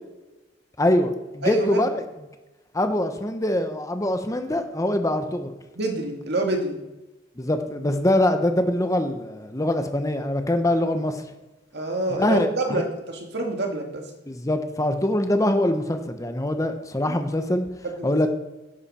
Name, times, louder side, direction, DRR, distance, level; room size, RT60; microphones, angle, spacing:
voice 1, 0.8-1.9 2.7-5.5 7.4-11.2 12.2-12.8 14.3-17.6 18.0-18.3, left 1 dB, 20° left, 7 dB, 0.9 m, -23 dB
voice 2, 1.4-1.8 5.7-6.8 11.7-14.0 17.1-17.2 18.0-18.3, right 2 dB, 60° right, 2 dB, 2.2 m, -27 dB
11.0 x 10.0 x 4.3 m, 1.1 s
head